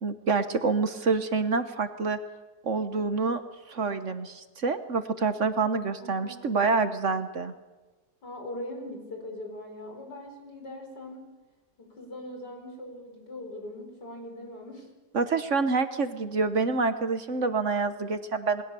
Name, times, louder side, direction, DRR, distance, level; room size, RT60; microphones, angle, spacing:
voice 1, 0.0-2.2 2.6-3.4 3.7-7.5 15.1-18.6, right 4 dB, 50° right, 10 dB, 1.4 m, -27 dB
voice 2, 6.0-6.4 8.2-11.3 11.8-14.9, left 1 dB, 85° left, 3 dB, 5.4 m, -41 dB
28.0 x 20.5 x 6.9 m, 1.2 s
omnidirectional pair, 1.8 m